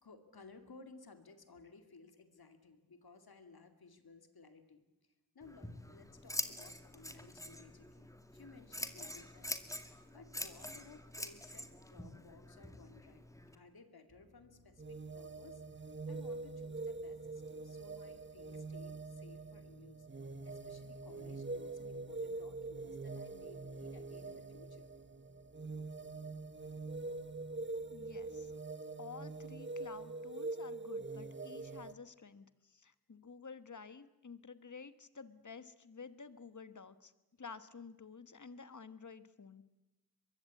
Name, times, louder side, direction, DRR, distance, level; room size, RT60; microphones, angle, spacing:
voice 1, 0.0-4.9 5.3-9.5 10.1-13.2 13.5-15.6 16.1-20.1 20.4-24.9, left 4 dB, 85° left, 8 dB, 2.4 m, -58 dB
Scissors, 5.4-13.5, left 1 dB, 10° left, 2.1 m, -45 dB
sound 1, 14.1-28.6, right 3 dB, 50° right, 5.9 m, -66 dB
sound 2, 14.8-31.9, right 3 dB, 30° right, 1.2 m, -44 dB
voice 2, 27.9-28.5 29.0-37.1 37.4-39.7, left 5 dB, 55° left, 13 dB, 1.4 m, -51 dB
23.5 x 22.0 x 8.5 m, 1.0 s
wide cardioid pair, 70°, 36 cm